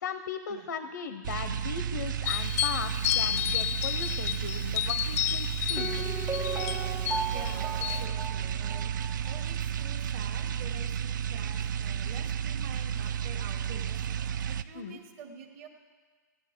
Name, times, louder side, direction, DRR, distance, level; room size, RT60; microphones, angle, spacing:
voice 1, 0.0-6.2 14.7-15.0, left 6 dB, 85° left, 10 dB, 0.7 m, -38 dB
sound 1, 1.2-14.6, right 8 dB, 75° right, 0.4 m, -32 dB
sound 2, 2.3-8.1, left 12 dB, 50° left, 0.4 m, -31 dB
Piano, 5.8-9.5 9.8-9.9, right 4 dB, 15° right, 0.5 m, -36 dB
voice 2, 7.3-8.9 9.2-13.9 14.5-15.7, right 6 dB, 45° right, 5 dB, 1.3 m, -47 dB
15.5 x 9.1 x 3.7 m, 1.5 s
hypercardioid pair, 155°, 10 cm